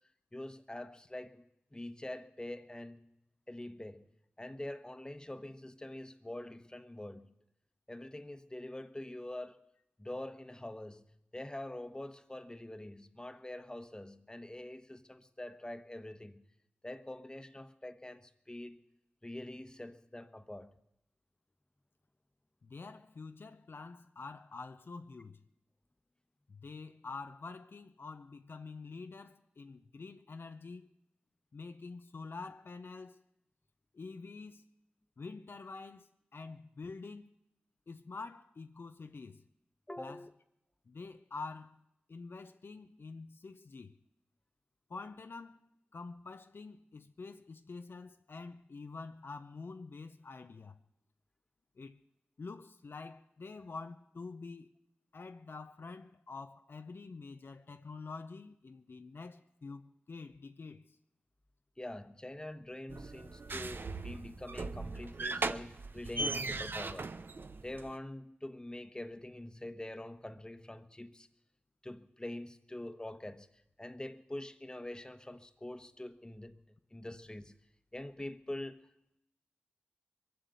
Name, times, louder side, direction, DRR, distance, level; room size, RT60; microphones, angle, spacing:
voice 1, 0.3-3.1 3.5-4.1 4.4-7.3 7.9-9.7 10.0-16.5 16.8-18.8 19.2-20.7 39.9-40.3 61.8-67.1 67.6-71.3 71.8-73.5 73.8-76.6 76.9-77.5 77.9-78.8, left 1 dB, 20° left, 1.2 m, -45 dB
voice 2, 22.6-25.4 26.5-30.9 31.5-33.2 33.9-34.6 35.2-37.3 37.9-39.4 40.0-40.3 40.9-41.8 42.1-43.9 44.9-45.6 45.9-50.8 51.8-52.0 52.4-54.7 55.1-59.8 60.1-60.8, left 4 dB, 65° left, 0.7 m, -47 dB
sound 1, 62.9-68.0, right 3 dB, 60° right, 0.7 m, -39 dB
22.5 x 7.8 x 8.2 m
cardioid pair, 40°, 4 cm